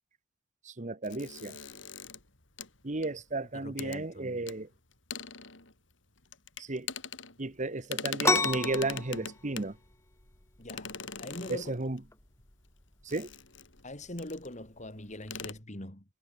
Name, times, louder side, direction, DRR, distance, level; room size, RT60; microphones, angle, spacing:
voice 1, 0.6-1.6 2.8-4.7 6.6-6.9 7.4-9.8 11.5-12.0 13.0-13.3, right 2 dB, 40° right, 1.3 m, -34 dB
sound 1, 1.0-3.4 3.8-4.0 4.5-4.6 4.9-5.9 6.2-7.6 7.8-9.8 10.7-12.0 13.1-13.8 14.2-14.5 14.8-14.9 15.2-15.5, left 6 dB, 80° left, 5.7 m, -40 dB
voice 2, 3.5-4.5 10.6-11.7 13.8-16.0, left 1 dB, 40° left, 4.7 m, -42 dB
sound 2, 8.2-15.6, left 3 dB, 15° left, 1.8 m, -35 dB
head